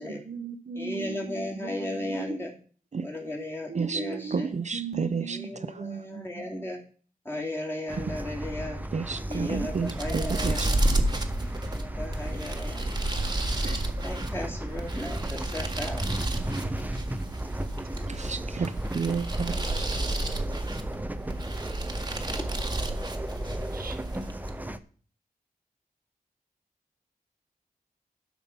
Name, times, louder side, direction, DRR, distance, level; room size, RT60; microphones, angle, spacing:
voice 1, 0.0-2.3 3.2-3.4 3.7-5.5 5.8-6.4 10.8-11.0 23.6-24.3, right 5 dB, 70° right, 1.0 m, -38 dB
voice 2, 0.8-2.5 3.0-4.5 5.2-6.8 7.2-8.8 9.3-10.8 11.5-13.0 14.0-16.0, left 1 dB, 15° left, 2.9 m, -35 dB
voice 3, 3.7-4.1 4.3-5.9 8.9-10.7 13.6-13.8 18.1-19.9, right 5 dB, 50° right, 0.6 m, -31 dB
sound 1, 7.9-24.8, right 1 dB, 10° right, 0.7 m, -36 dB
sound 2, 9.1-24.7, right 1 dB, 25° right, 1.5 m, -31 dB
11.5 x 5.9 x 5.5 m
wide cardioid pair, 85°, 15 cm